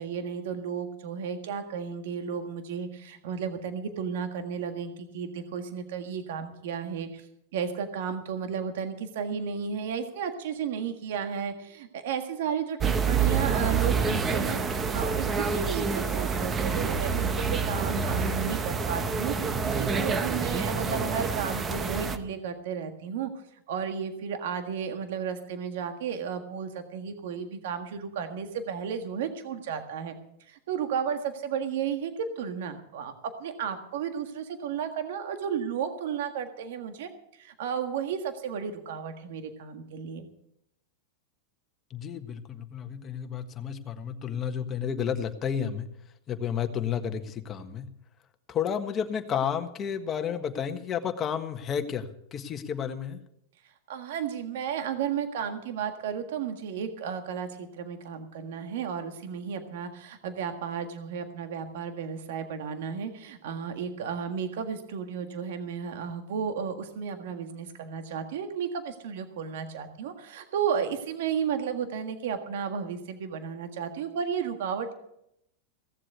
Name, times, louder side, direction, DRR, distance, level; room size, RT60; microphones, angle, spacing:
voice 1, 0.0-7.3 7.5-23.3 23.7-30.1 30.5-33.1 33.4-40.3 53.9-74.9, right 7 dB, 70° right, 7 dB, 1.6 m, -33 dB
sound 1, 12.8-22.2, right 5 dB, 20° right, 1.2 m, -27 dB
voice 2, 41.9-45.9 46.3-47.9 48.5-52.0 52.3-53.2, left 8 dB, 25° left, 7 dB, 1.5 m, -31 dB
16.5 x 7.6 x 8.1 m, 0.78 s
supercardioid pair, 135°, 0 cm